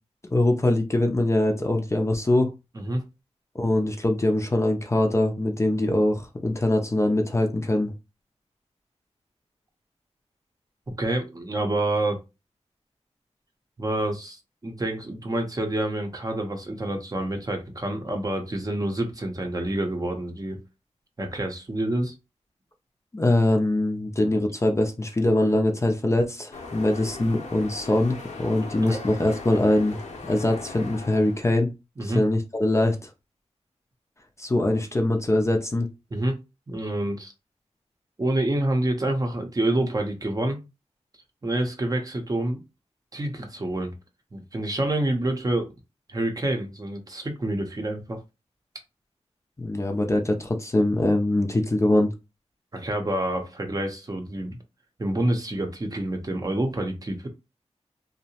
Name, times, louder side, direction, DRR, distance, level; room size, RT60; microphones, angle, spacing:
voice 1, 0.2-2.5 3.5-7.9 23.1-31.7 32.0-33.0 34.4-35.9 49.6-52.1, left 1 dB, 25° left, 0.5 m, -23 dB
voice 2, 11.0-12.2 13.8-20.6 21.2-22.1 28.8-29.0 32.0-32.2 36.1-36.4 36.7-37.3 38.2-40.6 41.4-42.6 43.1-43.9 44.3-45.7 46.1-48.2 52.7-54.6 55.0-57.3, right 1 dB, 30° right, 0.6 m, -27 dB
sound 1, 26.5-31.5, left 3 dB, 85° left, 0.6 m, -39 dB
2.7 x 2.0 x 2.8 m
wide cardioid pair, 95°, 12 cm